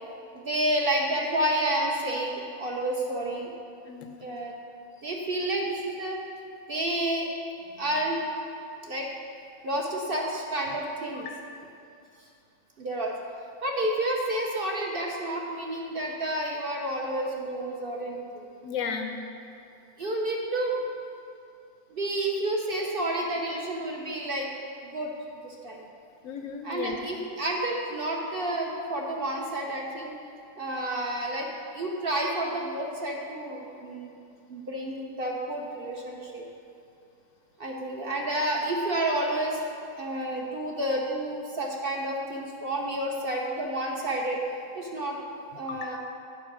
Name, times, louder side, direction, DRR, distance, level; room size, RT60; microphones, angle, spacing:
voice 1, 0.3-3.5 4.2-4.6 5.0-6.2 6.7-7.3 7.8-8.2 8.8-9.1 9.6-11.3 12.8-13.2 13.6-18.5 20.0-20.8 21.9-24.5 24.8-25.1 25.4-25.9 26.6-30.1 30.6-31.5 31.7-34.1 34.5-36.4 37.6-39.6 39.9-44.4 44.7-45.2 45.5-46.0, right 1 dB, 50° right, -1 dB, 0.8 m, -30 dB
voice 2, 3.9-4.2 11.1-11.4 18.6-19.2 26.2-27.0 45.7-45.9, left 6 dB, 70° left, 5 dB, 0.9 m, -34 dB
8.6 x 4.8 x 6.2 m, 2.5 s
omnidirectional pair, 1.5 m